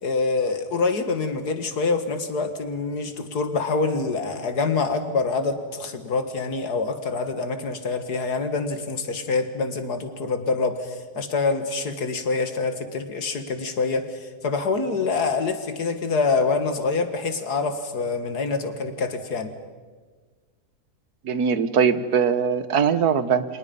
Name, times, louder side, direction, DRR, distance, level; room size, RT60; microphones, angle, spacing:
voice 1, 0.0-19.5, left 4 dB, 75° left, 8 dB, 2.4 m, -26 dB
voice 2, 21.2-23.5, right 7 dB, 70° right, 13 dB, 1.6 m, -21 dB
29.5 x 26.0 x 5.5 m, 1.4 s
omnidirectional pair, 1.7 m